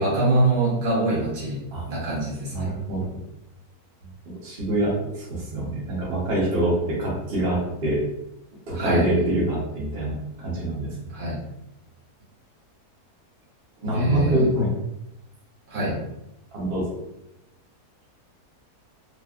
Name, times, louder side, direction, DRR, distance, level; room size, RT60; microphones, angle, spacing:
voice 1, 0.0-1.6 1.9-2.7 8.7-9.0 11.1-11.4 13.9-14.4 15.7-16.0, right 2 dB, 75° right, -5 dB, 1.7 m, -24 dB
voice 2, 2.5-3.2 4.3-8.0 8.7-10.9 13.8-14.7 16.5-16.9, right 1 dB, 40° right, -6 dB, 1.1 m, -25 dB
3.6 x 2.4 x 2.4 m, 0.86 s
omnidirectional pair, 1.6 m